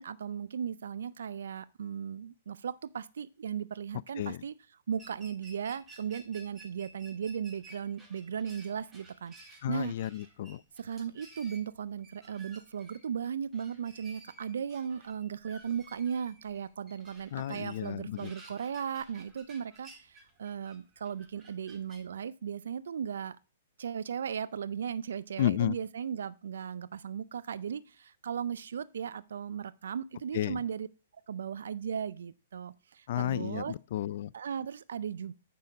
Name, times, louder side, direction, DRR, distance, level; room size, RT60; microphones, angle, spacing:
voice 1, 0.0-4.5 4.9-9.9 10.8-23.4 23.8-30.9 31.3-33.7 34.3-35.3, right 7 dB, 75° right, 0.4 m, -37 dB
sound 1, 4.9-22.0, right 2 dB, 20° right, 3.7 m, -55 dB
voice 2, 9.6-10.6 17.3-18.3 25.4-25.7 30.3-30.6 33.1-34.3, left 12 dB, 55° left, 0.4 m, -32 dB
9.3 x 5.7 x 4.9 m
hypercardioid pair, 125°, 0 cm